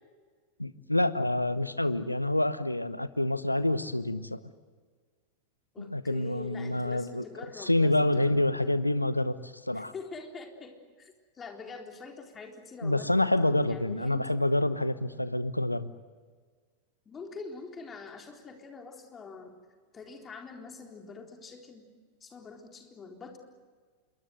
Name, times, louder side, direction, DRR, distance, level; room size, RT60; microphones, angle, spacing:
voice 1, 0.6-4.4 5.8-7.2 7.6-9.9 12.8-15.9, left 1 dB, 85° left, 15 dB, 1.0 m, -27 dB
voice 2, 5.7-8.7 9.7-14.4 17.1-19.5 19.9-21.9 22.2-23.4, left 4 dB, 20° left, 2 dB, 4.0 m, -45 dB
27.0 x 23.0 x 8.0 m, 1.5 s
figure-of-eight pair, 90°, 0 cm